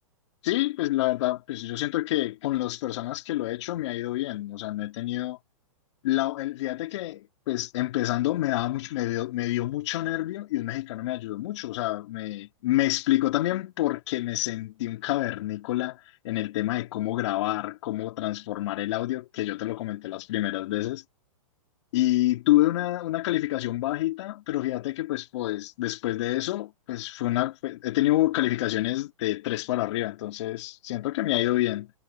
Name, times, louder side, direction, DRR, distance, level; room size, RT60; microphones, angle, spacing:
voice 1, 0.4-5.4 6.0-21.0 21.9-31.9, left 16 dB, 55° left, 2.6 m, -28 dB
hypercardioid pair, 140°, 18 cm